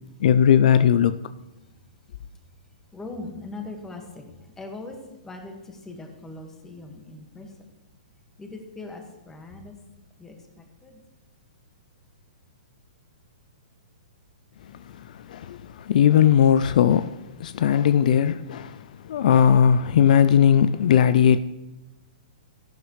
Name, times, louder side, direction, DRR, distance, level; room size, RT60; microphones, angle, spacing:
voice 1, 0.2-1.2 15.1-21.4, left 8 dB, 60° left, 0.4 m, -18 dB
voice 2, 2.6-7.7 8.4-9.7 10.2-11.0, left 2 dB, 10° left, 1.7 m, -41 dB
14.0 x 11.5 x 3.2 m
hypercardioid pair, 140°, 5 cm